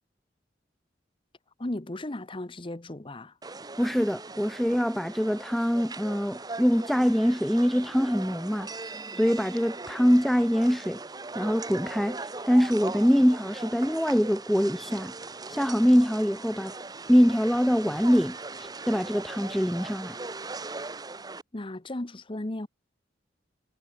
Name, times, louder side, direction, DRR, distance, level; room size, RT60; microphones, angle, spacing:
voice 1, 1.6-3.4 21.5-22.7, left 1 dB, 30° left, 1.0 m, -35 dB
sound 1, 3.4-21.4, right 3 dB, 20° right, 1.0 m, -40 dB
voice 2, 3.8-8.7 9.1-11.0 11.3-15.1 15.5-16.7 17.1-20.2, equal, ahead, 0.5 m, -24 dB
head